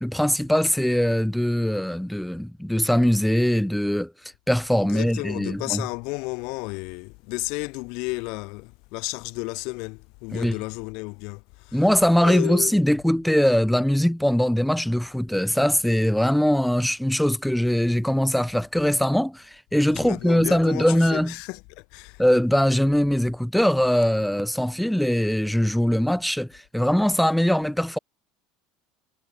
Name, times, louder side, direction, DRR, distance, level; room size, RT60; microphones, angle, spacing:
voice 1, 0.0-4.1 4.5-5.8 10.3-10.6 11.7-21.3 22.2-28.0, equal, ahead, 2.0 m, -21 dB
voice 2, 4.8-11.9 12.2-12.7 19.9-22.2, left 29 dB, 55° left, 7.7 m, -33 dB
cardioid pair, 170°, 0 cm